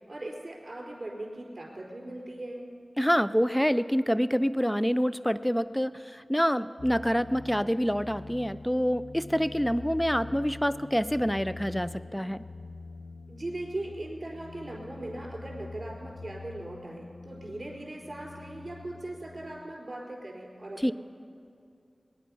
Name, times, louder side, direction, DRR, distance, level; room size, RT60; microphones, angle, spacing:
voice 1, 0.1-2.7 13.3-20.9, right 1 dB, 50° right, -2 dB, 4.2 m, -39 dB
voice 2, 3.0-12.4 20.8-20.9, equal, 5° left, 15 dB, 0.5 m, -27 dB
sound 1, 6.8-19.7, left 3 dB, 70° left, 0.5 m, -45 dB
20.5 x 10.5 x 5.5 m, 2.4 s
wide cardioid pair, 45°, 0 cm